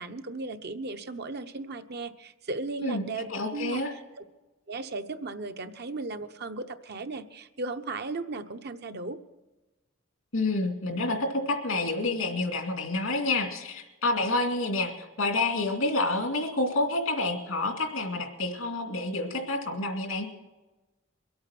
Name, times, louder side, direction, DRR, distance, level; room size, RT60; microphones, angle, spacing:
voice 1, 0.0-3.8 4.2-4.3 4.7-9.2, right 3 dB, 55° right, 8 dB, 0.8 m, -36 dB
voice 2, 3.3-3.9 10.3-20.3, left 2 dB, 90° left, 3 dB, 2.5 m, -28 dB
22.5 x 8.7 x 6.0 m, 1.1 s
head